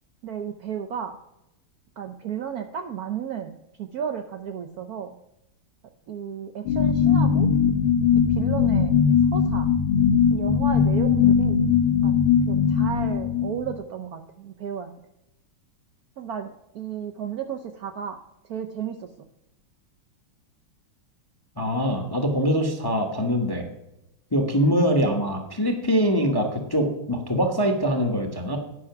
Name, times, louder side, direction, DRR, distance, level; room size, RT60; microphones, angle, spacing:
voice 1, 0.2-1.2 2.0-5.2 6.1-7.5 8.1-9.0 9.3-9.7 10.3-11.6 11.9-12.1 12.4-14.9 16.2-18.2 18.5-19.1, right 8 dB, 70° right, 6 dB, 0.9 m, -33 dB
sound 1, 6.7-13.8, left 7 dB, 90° left, 1.7 m, -20 dB
voice 2, 21.6-23.6 24.3-28.6, equal, 20° left, 5 dB, 0.7 m, -23 dB
9.9 x 5.8 x 5.8 m, 0.88 s
omnidirectional pair, 2.2 m